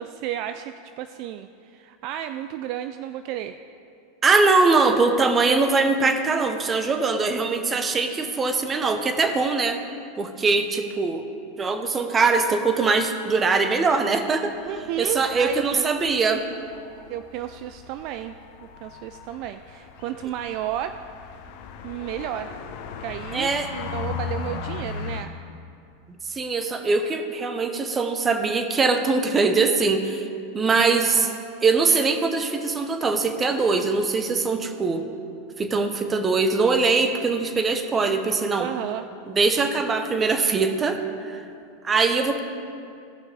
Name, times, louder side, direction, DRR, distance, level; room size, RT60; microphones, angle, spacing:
voice 1, 0.0-3.6 14.6-15.8 17.1-18.4 18.6-21.0 21.8-22.6 23.0-25.3 31.0-31.4 38.6-39.1, right 11 dB, 55° right, 9 dB, 0.3 m, -33 dB
voice 2, 4.2-9.8 10.2-11.2 11.6-14.5 15.0-16.4 23.3-23.7 26.3-30.3 30.5-31.3 31.6-35.1 35.6-38.7 39.3-41.4 41.8-42.4, right 4 dB, 20° right, 7 dB, 0.9 m, -22 dB
sound 1, 14.5-25.2, left 6 dB, 65° left, 0.9 m, -37 dB
16.5 x 5.8 x 3.4 m, 2.5 s
hypercardioid pair, 115°, 0 cm